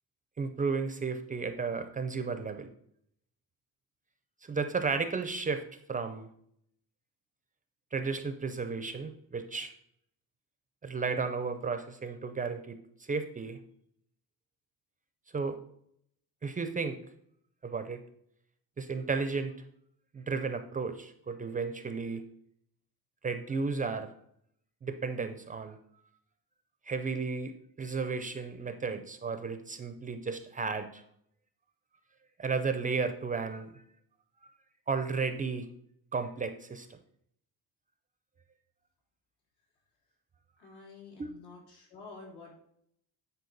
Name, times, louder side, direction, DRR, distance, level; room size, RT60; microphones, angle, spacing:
voice 1, 0.4-2.7 4.5-5.6 5.9-6.3 7.9-9.7 10.8-13.6 15.3-15.6 16.4-17.0 17.6-18.0 18.8-19.5 20.1-22.2 23.2-24.1 24.8-25.8 26.9-31.0 32.4-33.8 34.4-34.5 34.9-35.7 36.1-37.0 41.2-41.3, right 4 dB, 20° right, 9 dB, 0.4 m, -33 dB
voice 2, 40.6-42.5, left 4 dB, 85° left, -2 dB, 3.4 m, -49 dB
9.5 x 4.6 x 3.9 m, 0.70 s
cardioid pair, 150°, 38 cm